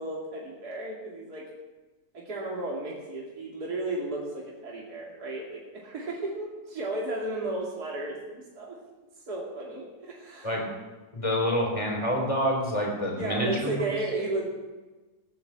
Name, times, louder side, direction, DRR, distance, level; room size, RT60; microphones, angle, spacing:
voice 1, 0.0-1.5 2.1-8.8 9.3-10.5 13.1-14.4, right 2 dB, 70° right, -3 dB, 3.1 m, -34 dB
voice 2, 11.1-13.9, equal, 20° left, 0 dB, 4.1 m, -27 dB
16.0 x 11.0 x 7.5 m, 1.2 s
omnidirectional pair, 1.7 m